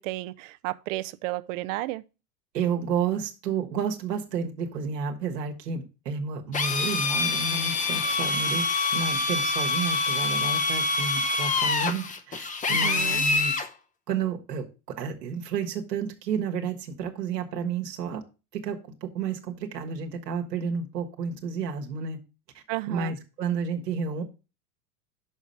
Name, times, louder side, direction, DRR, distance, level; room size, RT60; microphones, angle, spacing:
voice 1, 0.0-2.0 12.7-13.2 22.7-23.2, right 18 dB, 55° right, 0.6 m, -33 dB
voice 2, 2.5-8.6 8.9-13.6 14.1-14.6 15.0-18.2 18.5-22.2 22.9-24.2, right 6 dB, 80° right, 1.5 m, -31 dB
Drill, 6.5-13.7, left 3 dB, 15° left, 0.7 m, -26 dB
6.4 x 5.1 x 5.5 m
hypercardioid pair, 90°, 48 cm